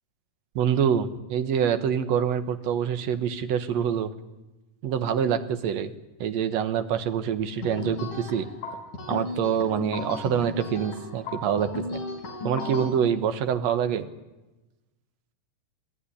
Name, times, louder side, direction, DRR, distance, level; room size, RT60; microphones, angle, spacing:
voice 1, 0.6-4.1 4.8-5.9 6.2-8.5 9.1-12.0 12.4-14.1, right 8 dB, 60° right, 10 dB, 2.1 m, -26 dB
sound 1, 7.6-12.9, left 2 dB, 65° left, 6.1 m, -35 dB
25.5 x 17.0 x 9.9 m, 1.1 s
omnidirectional pair, 3.8 m